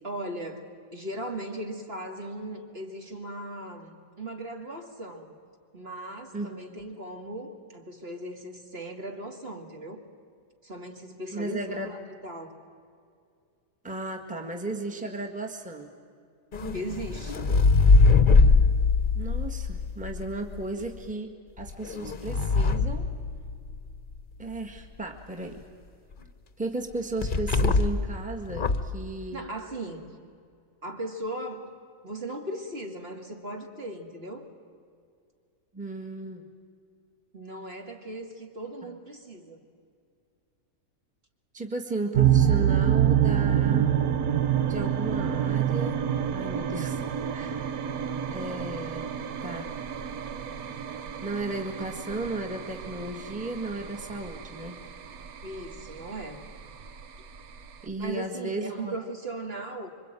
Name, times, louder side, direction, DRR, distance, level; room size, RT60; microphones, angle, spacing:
voice 1, 0.0-5.3 5.7-10.0 10.6-12.0 12.2-12.6 16.7-17.5 29.3-30.2 30.8-31.7 32.0-34.5 37.3-39.6 55.4-56.4 58.0-59.9, right 1 dB, 45° right, 2 dB, 2.6 m, -38 dB
voice 2, 11.3-12.0 13.8-15.9 19.2-23.1 24.4-25.6 26.6-29.5 35.7-36.4 41.5-43.9 44.7-46.0 46.3-47.0 47.3-47.8 48.3-49.1 49.4-49.8 51.2-54.8 57.8-59.0, right 2 dB, 5° right, 2 dB, 1.8 m, -35 dB
sound 1, 16.5-20.6 21.6-23.9 27.2-28.1 28.5-29.0, left 4 dB, 40° left, 1.1 m, -22 dB
sound 2, 42.1-57.9, right 10 dB, 85° right, 1.4 m, -27 dB
Bowed string instrument, 43.6-49.0, right 4 dB, 70° right, 6.5 m, -52 dB
26.5 x 24.0 x 9.2 m, 2.3 s
omnidirectional pair, 1.5 m